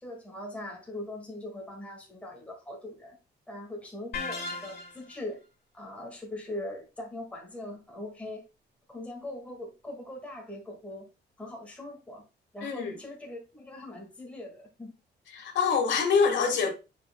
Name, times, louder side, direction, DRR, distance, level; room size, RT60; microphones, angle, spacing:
voice 1, 0.0-3.2 3.5-5.4 5.7-8.4 8.9-11.1 11.4-12.2 12.5-14.9, left 1 dB, 5° left, 1.9 m, -41 dB
sound 1, 4.1-5.2, left 3 dB, 55° left, 3.3 m, -36 dB
voice 2, 12.6-12.9 15.3-16.7, left 5 dB, 85° left, 1.7 m, -25 dB
9.6 x 4.8 x 2.2 m
cardioid pair, 175°, 18 cm